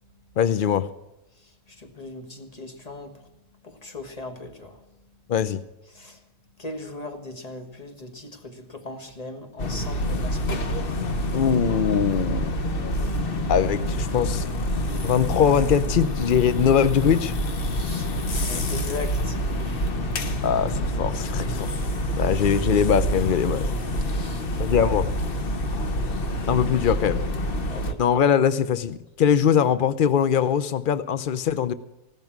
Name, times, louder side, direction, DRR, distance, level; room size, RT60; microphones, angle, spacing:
voice 1, 0.4-0.9 5.3-5.6 11.3-12.5 13.5-14.5 15.0-17.3 20.4-21.7 22.2-23.7 24.6-25.1 26.5-27.2 28.0-31.7, left 8 dB, 90° left, 0.4 m, -22 dB
voice 2, 1.4-3.3 3.6-4.8 5.9-6.2 6.6-10.8 17.6-20.5 24.1-24.6 26.8-26.9 27.7-28.0, left 2 dB, 25° left, 1.7 m, -39 dB
sound 1, 9.6-27.9, equal, 40° left, 1.1 m, -27 dB
15.5 x 12.5 x 6.0 m
omnidirectional pair, 1.7 m